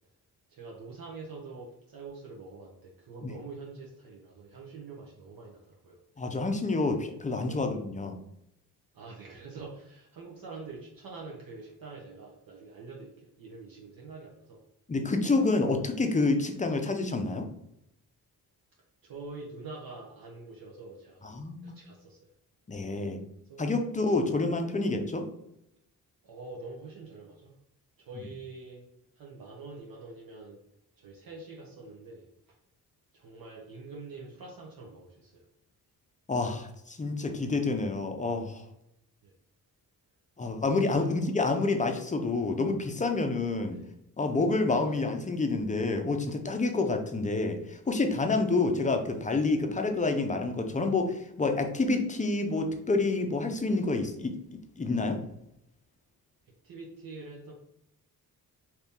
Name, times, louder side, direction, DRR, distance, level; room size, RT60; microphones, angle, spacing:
voice 1, 0.5-6.0 7.3-7.6 8.9-14.6 19.0-21.3 21.6-22.3 23.4-23.7 26.2-27.6 28.0-28.9 29.1-30.6 31.0-32.2 33.1-35.4 39.2-39.3 40.8-41.7 43.7-43.9 44.7-45.1 56.6-57.5, right 3 dB, 65° right, -2 dB, 0.8 m, -45 dB
voice 2, 6.2-8.1 14.9-17.5 21.2-21.7 22.7-23.2 23.6-25.3 36.3-38.6 40.4-43.8 44.2-54.4 54.8-55.2, left 3 dB, 20° left, 5 dB, 0.5 m, -28 dB
2.9 x 2.7 x 3.5 m, 0.80 s
cardioid pair, 85°, 38 cm